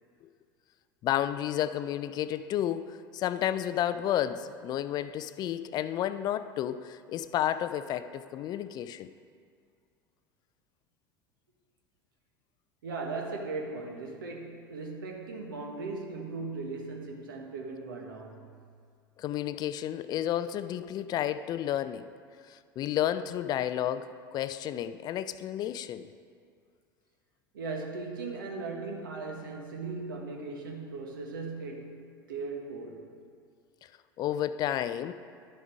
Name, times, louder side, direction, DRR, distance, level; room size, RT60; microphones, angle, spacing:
voice 1, 1.0-9.1 19.2-22.1 22.5-26.1 34.2-35.1, left 11 dB, 35° left, 13 dB, 0.4 m, -31 dB
voice 2, 12.8-18.5 27.5-33.1, right 3 dB, 70° right, 2 dB, 1.4 m, -38 dB
11.5 x 7.2 x 4.7 m, 2.2 s
figure-of-eight pair, 75°, 12 cm